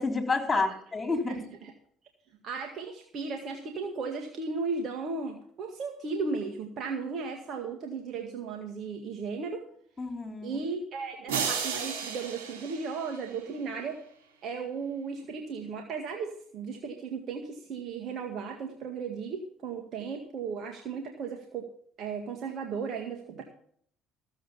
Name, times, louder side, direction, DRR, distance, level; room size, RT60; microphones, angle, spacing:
voice 1, 0.0-1.4 10.0-10.6, left 3 dB, 25° left, 4 dB, 3.6 m, -29 dB
voice 2, 2.4-9.6 10.4-14.0 14.4-21.7 22.0-23.4, right 5 dB, 55° right, 2 dB, 1.9 m, -35 dB
sound 1, 11.3-13.6, right 6 dB, 85° right, 4.0 m, -34 dB
15.0 x 7.9 x 5.7 m, 0.63 s
supercardioid pair, 75°, 0 cm